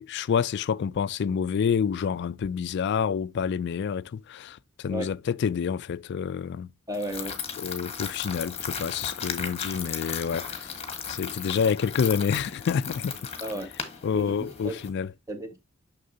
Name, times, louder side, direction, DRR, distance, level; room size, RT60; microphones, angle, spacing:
voice 1, 0.0-6.7 7.6-10.8 11.1-13.2 14.0-15.1, left 6 dB, 50° left, 0.3 m, -28 dB
sound 1, 6.9-14.9, left 7 dB, 30° left, 1.4 m, -36 dB
voice 2, 6.9-7.4 13.4-13.7 14.1-14.8 15.3-15.6, right 1 dB, 15° right, 1.4 m, -34 dB
6.6 x 6.4 x 2.6 m
head